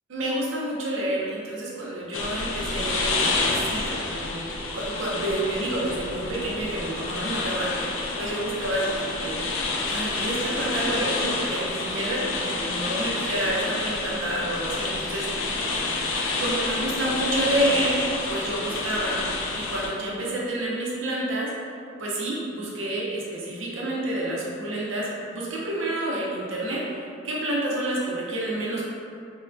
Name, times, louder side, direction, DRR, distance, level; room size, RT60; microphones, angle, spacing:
voice 1, 0.1-3.2 3.4-9.4 9.9-15.3 16.4-18.0 18.3-19.2 19.5-21.5 22.0-28.9, right 1 dB, 90° right, -4 dB, 0.6 m, -29 dB
sound 1, 2.1-19.9, left 3 dB, 75° left, 0.4 m, -29 dB
3.0 x 2.1 x 2.5 m, 2.5 s
head